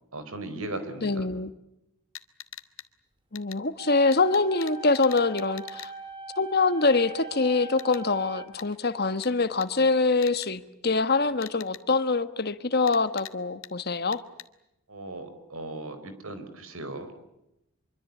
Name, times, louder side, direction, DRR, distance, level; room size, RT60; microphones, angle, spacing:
voice 1, 0.1-1.3 14.9-17.2, right 2 dB, 75° right, 4.5 m, -37 dB
voice 2, 1.0-1.5 3.3-5.9 6.4-14.2, left 3 dB, 45° left, 1.3 m, -24 dB
sound 1, 2.1-2.9 3.3-3.6 4.1-5.9 7.8-8.0 8.6-8.7 9.2-9.3 9.6-9.7 10.2-10.5 11.4-11.8 12.9-13.3 13.6-13.7 14.1-14.5, left 12 dB, 65° left, 1.6 m, -42 dB
sound 2, 3.8-8.8, right 4 dB, 20° right, 2.8 m, -41 dB
25.0 x 24.5 x 8.5 m
head